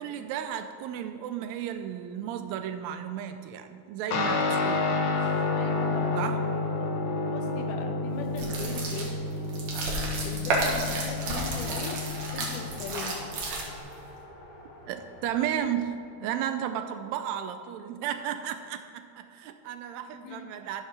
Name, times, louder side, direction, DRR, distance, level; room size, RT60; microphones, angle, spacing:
voice 1, 0.0-4.9 5.2-5.4 6.1-6.4 10.0-10.2 14.9-15.9 16.2-20.8, right 10 dB, 80° right, 8 dB, 1.6 m, -34 dB
Guitar, 4.1-13.8, left 3 dB, 70° left, 1.1 m, -30 dB
voice 2, 5.5-6.2 6.8-6.9 7.2-9.2 10.2-13.3 20.2-20.5, left 5 dB, 90° left, 4 dB, 2.4 m, -39 dB
sound 1, 8.3-14.0, right 2 dB, 65° right, 2.8 m, -32 dB
Race car auto racing, 10.9-16.1, left 1 dB, 55° left, 1.7 m, -47 dB
13.5 x 4.6 x 6.1 m, 2.5 s
omnidirectional pair, 3.6 m